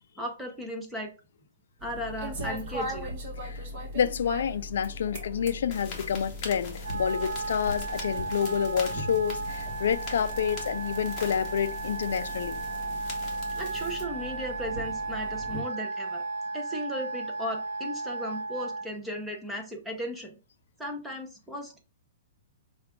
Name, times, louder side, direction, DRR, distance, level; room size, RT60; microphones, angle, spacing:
voice 1, 0.2-1.1 1.8-3.1 13.6-16.2 16.5-20.3 20.8-21.8, equal, 5° right, 0.5 m, -36 dB
sound 1, 1.8-15.6, left 1 dB, 35° right, 1.0 m, -40 dB
voice 2, 3.9-12.6, left 8 dB, 65° left, 0.3 m, -28 dB
sound 2, 5.7-14.0, left 2 dB, 20° left, 0.9 m, -43 dB
Wind instrument woodwind instrument, 6.8-18.9, right 3 dB, 65° right, 0.5 m, -35 dB
4.7 x 2.3 x 3.4 m
hypercardioid pair, 175°, 0 cm